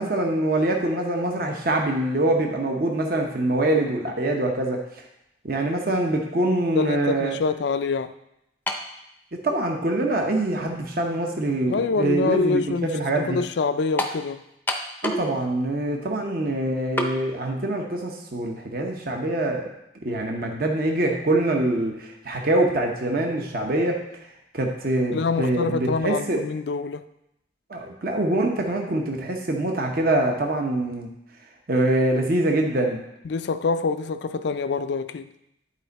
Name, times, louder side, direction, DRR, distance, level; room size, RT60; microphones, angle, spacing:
voice 1, 0.0-4.8 5.4-7.4 9.3-13.4 15.0-19.7 20.0-24.0 24.5-26.4 27.7-31.1 31.7-33.0, right 1 dB, 50° right, 0.9 m, -24 dB
voice 2, 6.7-8.1 11.7-14.5 25.1-27.0 33.2-35.3, left 4 dB, 65° left, 0.4 m, -26 dB
sound 1, 8.7-8.9 9.8-9.9 14.0-14.2 14.7-15.3 15.6-15.7 17.0-17.2, left 1 dB, 10° left, 0.6 m, -27 dB
11.0 x 4.4 x 4.0 m
head